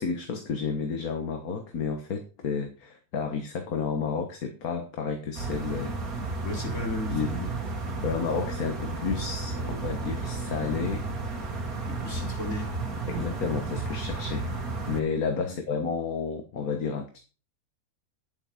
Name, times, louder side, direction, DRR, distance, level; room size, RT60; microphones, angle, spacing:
voice 1, 0.0-6.4 7.1-7.4 8.0-11.1 13.1-14.5 14.9-17.2, left 5 dB, 70° left, 5 dB, 1.8 m, -31 dB
sound 1, 5.3-15.0, right 3 dB, 70° right, 2.7 m, -33 dB
voice 2, 6.4-7.5 11.9-12.7 13.0-13.4 15.5-15.6, left 1 dB, 50° left, 0 dB, 4.5 m, -35 dB
11.0 x 8.0 x 5.2 m, 0.35 s
omnidirectional pair, 1.6 m